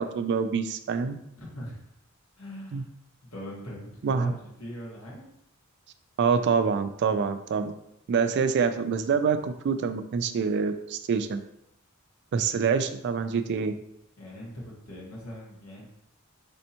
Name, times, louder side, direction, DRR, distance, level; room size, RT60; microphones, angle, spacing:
voice 1, 0.0-1.2 2.7-2.8 4.0-4.3 6.2-7.7 8.1-11.4 12.3-13.7, right 5 dB, 55° right, 10 dB, 0.3 m, -26 dB
voice 2, 1.4-1.8 2.4-2.9 3.3-5.2 12.5-12.6 14.2-15.9, equal, 85° left, -5 dB, 1.6 m, -41 dB
4.3 x 3.4 x 2.8 m, 0.77 s
head